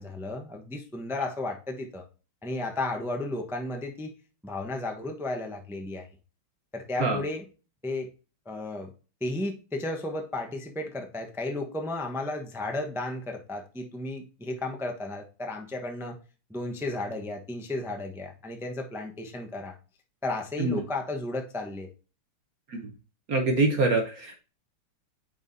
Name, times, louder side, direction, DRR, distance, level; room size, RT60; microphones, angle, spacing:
voice 1, 0.0-2.0 2.4-4.1 4.4-6.1 6.7-7.4 7.8-8.1 8.5-8.9 9.2-16.2 16.5-19.7 20.2-21.9, left 2 dB, ahead, 2 dB, 0.6 m, -33 dB
voice 2, 23.3-24.4, right 3 dB, 55° right, 4 dB, 1.3 m, -25 dB
9.1 x 4.8 x 2.7 m, 0.35 s
omnidirectional pair, 2.1 m